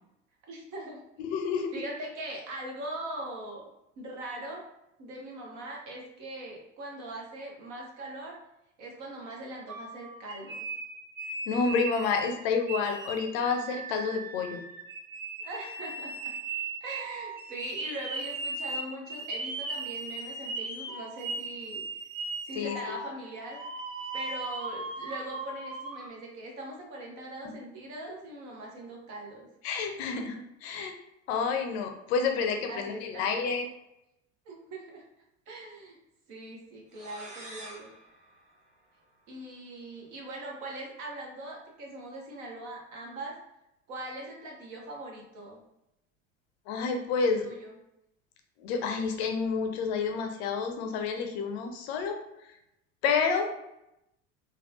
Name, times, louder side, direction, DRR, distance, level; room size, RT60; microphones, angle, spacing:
voice 1, 0.5-1.0 1.7-3.6 4.0-4.6 5.0-8.4 8.8-10.6 15.4-16.3 16.8-21.8 22.5-23.6 24.1-29.5 32.7-33.5 34.4-35.0 35.5-36.0 36.3-37.9 39.3-43.3 43.9-45.6 47.4-47.7, right 1 dB, 50° right, -1 dB, 1.1 m, -41 dB
voice 2, 1.2-1.7 11.5-14.6 22.5-23.0 27.4-27.5 29.6-31.0 31.3-33.7 46.7-47.5 48.6-52.2 53.0-53.6, left 5 dB, 55° left, 4 dB, 0.6 m, -29 dB
sound 1, 9.7-12.3 12.7-26.1, right 3 dB, 90° right, 0.6 m, -38 dB
sound 2, 36.9-39.5, right 1 dB, 20° right, 1.2 m, -48 dB
3.3 x 2.2 x 2.7 m, 0.87 s
figure-of-eight pair, 70°, 38 cm